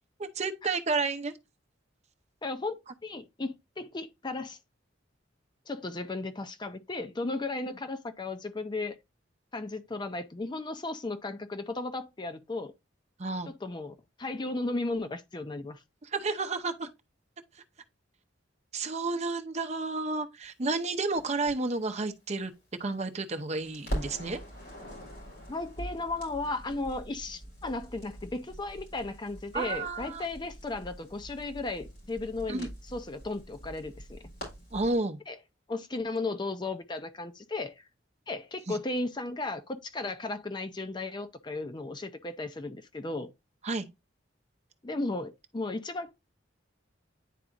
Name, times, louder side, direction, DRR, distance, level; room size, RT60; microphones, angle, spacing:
voice 1, 0.2-1.3 13.2-13.5 16.1-16.9 18.7-22.5 22.8-24.4 29.5-30.2 32.5-32.7 34.7-35.2 38.7-38.8 43.6-43.9, right 3 dB, 35° right, 0.7 m, -31 dB
voice 2, 2.4-4.6 5.7-9.0 9.5-12.7 13.5-15.8 25.5-34.2 35.3-35.4 35.7-37.9 38.3-43.3 44.8-46.1, left 2 dB, 25° left, 0.5 m, -35 dB
Crackle, 21.1-23.3 23.6-34.9, equal, 55° left, 4.2 m, -43 dB
10.0 x 4.0 x 2.4 m
head